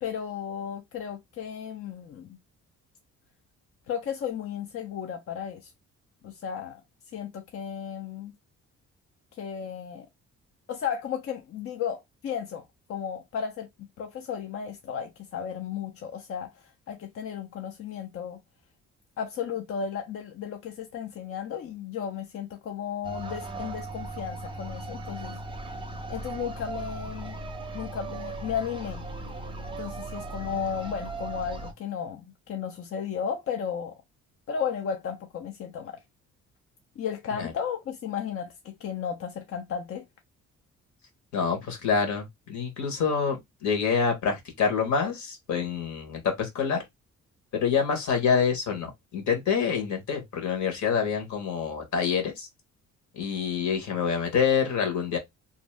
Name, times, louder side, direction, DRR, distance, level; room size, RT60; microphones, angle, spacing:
voice 1, 0.0-2.4 3.9-5.7 6.2-6.8 7.1-8.3 9.3-10.1 10.7-12.6 12.9-13.7 14.0-18.4 19.2-25.4 26.1-27.4 27.7-29.0 29.8-33.9 34.5-36.0 37.0-40.0, left 7 dB, 50° left, 0.5 m, -34 dB
sound 1, 23.0-31.7, right 2 dB, 15° right, 0.6 m, -37 dB
voice 2, 41.3-46.8 47.5-52.5 53.2-55.2, left 6 dB, 70° left, 1.2 m, -26 dB
2.7 x 2.0 x 3.2 m
cardioid pair, 90°, 30 cm